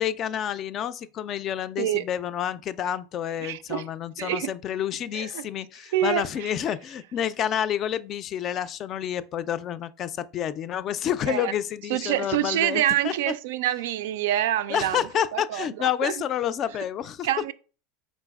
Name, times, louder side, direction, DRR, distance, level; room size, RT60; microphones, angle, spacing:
voice 1, 0.0-13.1 14.7-17.3, left 10 dB, 40° left, 0.3 m, -29 dB
voice 2, 3.4-3.8 4.2-4.5 5.1-5.5 5.9-6.5 11.3-11.5 11.9-15.0 15.3-16.1 17.2-17.5, right 12 dB, 75° right, 0.3 m, -26 dB
4.0 x 3.8 x 2.3 m
hypercardioid pair, 105°, 0 cm